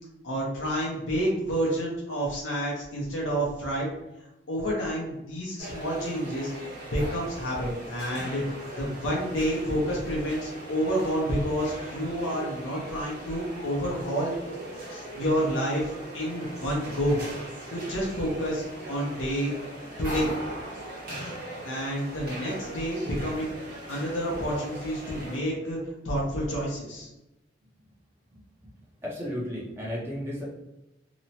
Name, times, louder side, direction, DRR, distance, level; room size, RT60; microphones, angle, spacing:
voice 1, 0.2-3.9 4.5-14.3 14.9-17.2 17.7-19.5 20.0-20.3 21.2-21.3 21.6-23.5 23.9-25.8 26.0-27.1, equal, 80° left, -4 dB, 0.7 m, -29 dB
sound 1, 5.6-25.4, right 1 dB, 50° right, 1.1 m, -40 dB
voice 2, 29.0-30.4, equal, 10° right, -7 dB, 0.6 m, -33 dB
2.9 x 2.1 x 2.7 m, 0.95 s
head